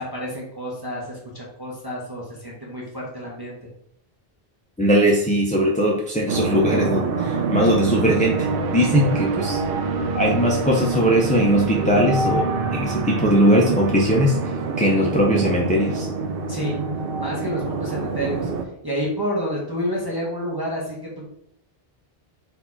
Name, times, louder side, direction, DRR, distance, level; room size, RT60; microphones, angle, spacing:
voice 1, 0.0-3.6 16.5-16.8 17.2-18.5 18.8-21.3, equal, 25° right, -4 dB, 0.9 m, -29 dB
voice 2, 4.8-9.6 10.1-16.1, equal, 10° left, -3 dB, 0.4 m, -20 dB
sound 1, 6.3-18.6, right 4 dB, 70° right, 0.8 m, -25 dB
4.2 x 2.7 x 4.4 m, 0.70 s
omnidirectional pair, 1.0 m